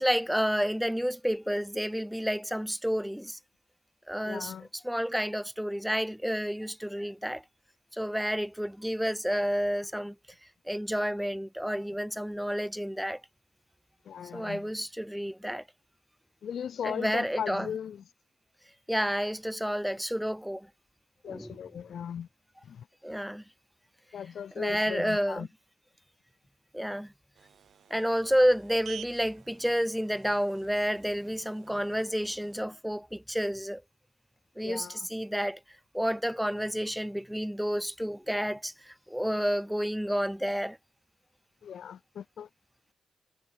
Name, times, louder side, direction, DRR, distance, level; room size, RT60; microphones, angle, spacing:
voice 1, 0.0-3.4 4.1-7.4 7.9-10.1 10.7-13.2 14.3-15.6 16.8-17.7 18.9-20.7 21.3-21.6 23.0-23.4 24.6-25.5 26.7-27.1 27.9-33.8 34.6-35.6 35.9-40.8, equal, 5° right, 1.0 m, -30 dB
voice 2, 4.2-4.7 14.1-14.7 16.4-18.0 21.2-22.3 22.6-22.9 24.1-25.5 34.6-35.1 41.6-42.5, left 8 dB, 85° left, 0.5 m, -38 dB
sound 1, 27.3-32.6, right 9 dB, 90° right, 5.8 m, -51 dB
cardioid pair, 60°, 0 cm